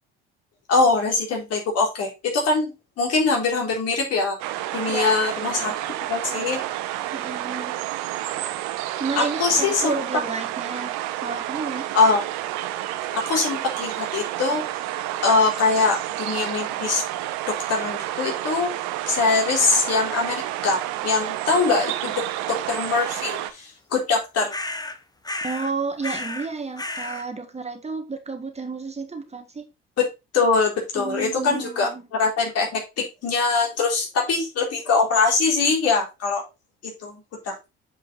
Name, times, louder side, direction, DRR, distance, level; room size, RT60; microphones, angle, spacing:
voice 1, 0.7-4.4 4.7-5.7 6.1-6.6 9.2-9.9 11.9-12.2 13.1-14.6 15.2-17.0 17.5-18.7 19.1-24.5 30.0-36.4 36.8-37.7, left 4 dB, 55° left, 3.9 m, -23 dB
sound 1, 4.4-23.5, right 14 dB, 65° right, 1.0 m, -30 dB
voice 2, 4.9-5.8 7.1-7.8 9.0-11.9 25.4-29.7 30.9-32.1, right 4 dB, 20° right, 1.7 m, -32 dB
sound 2, 24.5-25.0 25.2-25.7 26.0-26.5 26.8-27.3, left 2 dB, 15° left, 1.2 m, -32 dB
8.6 x 5.0 x 4.0 m
hypercardioid pair, 55°, 30 cm